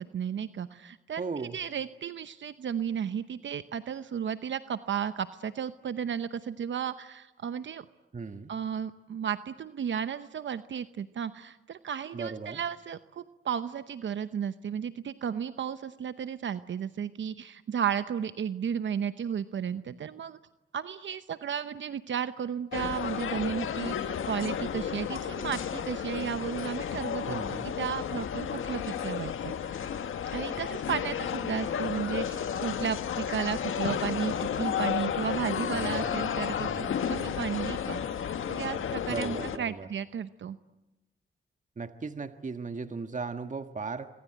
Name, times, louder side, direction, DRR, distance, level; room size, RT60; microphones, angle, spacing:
voice 1, 0.0-7.8 8.5-20.4 20.7-29.9 30.3-40.6, right 8 dB, 65° right, 12 dB, 0.9 m, -34 dB
voice 2, 1.2-1.6 8.1-8.5 12.1-12.6 27.2-27.7 35.7-36.2 36.6-36.9 39.1-39.9 41.8-44.1, right 4 dB, 35° right, 8 dB, 1.6 m, -37 dB
sound 1, 22.7-39.6, left 8 dB, 75° left, 1.5 m, -32 dB
26.0 x 24.5 x 9.2 m, 1.0 s
cardioid pair, 55°, 21 cm